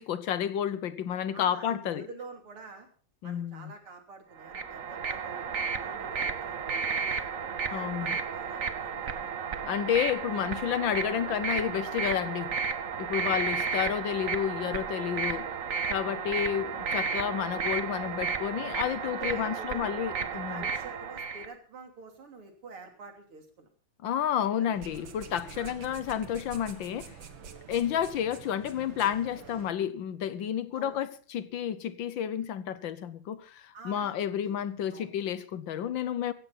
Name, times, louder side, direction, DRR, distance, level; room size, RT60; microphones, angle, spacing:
voice 1, 0.0-2.1 3.2-3.7 7.7-8.2 9.6-12.5 13.0-15.5 15.9-20.6 24.0-27.2 27.7-36.3, left 9 dB, 65° left, 1.5 m, -31 dB
voice 2, 1.3-2.9 3.2-5.4 5.8-7.3 7.7-9.4 10.3-10.4 13.2-13.5 19.0-19.9 20.3-23.7 24.6-24.7 25.5-25.7 30.7-31.0 33.7-34.1 34.4-34.6 34.9-35.1, right 3 dB, 85° right, 4.0 m, -47 dB
sound 1, 4.4-21.5, right 6 dB, 45° right, 1.2 m, -33 dB
sound 2, 24.7-29.7, right 6 dB, 65° right, 2.3 m, -46 dB
16.0 x 15.0 x 4.2 m
omnidirectional pair, 2.3 m